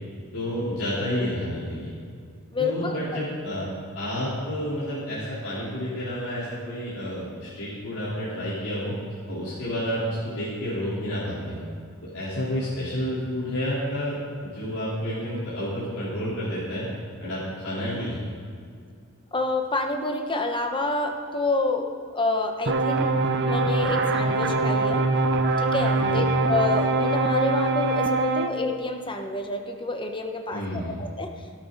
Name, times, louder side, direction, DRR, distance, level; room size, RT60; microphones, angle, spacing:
voice 1, 0.3-1.9 2.6-3.7 3.9-8.9 9.3-11.6 12.0-16.9 17.2-18.2 26.0-26.3 30.5-31.0, equal, 85° left, -10 dB, 3.9 m, -30 dB
voice 2, 2.5-3.0 19.3-21.9 22.1-25.0 25.6-31.3, left 2 dB, 25° left, 4 dB, 1.0 m, -28 dB
sound 1, 22.7-28.5, right 3 dB, 55° right, 0.8 m, -23 dB
17.5 x 12.0 x 4.1 m, 2.2 s
head